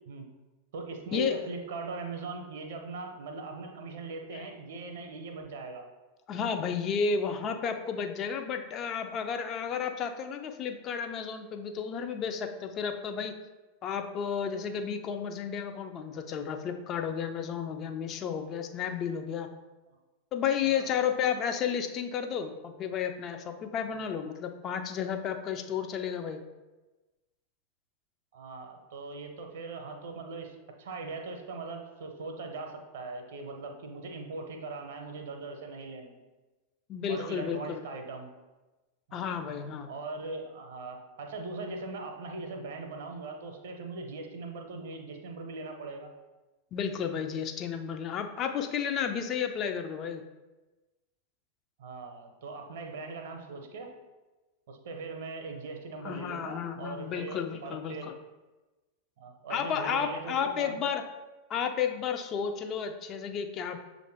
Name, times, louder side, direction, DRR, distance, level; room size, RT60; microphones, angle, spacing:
voice 1, 0.7-5.9 19.9-20.0 20.6-20.9 23.9-24.0 28.3-36.2 37.1-38.3 39.1-39.4 39.9-46.1 51.8-53.9 54.7-58.1 59.2-60.8, right 3 dB, 55° right, 4 dB, 0.6 m, -40 dB
voice 2, 6.3-13.3 13.8-19.5 20.3-26.4 36.9-37.8 39.1-39.9 46.7-50.2 56.0-58.1 59.5-61.0 61.5-63.8, left 7 dB, 30° left, 6 dB, 0.4 m, -32 dB
6.4 x 2.5 x 3.3 m, 1.2 s
figure-of-eight pair, 90°, 0 cm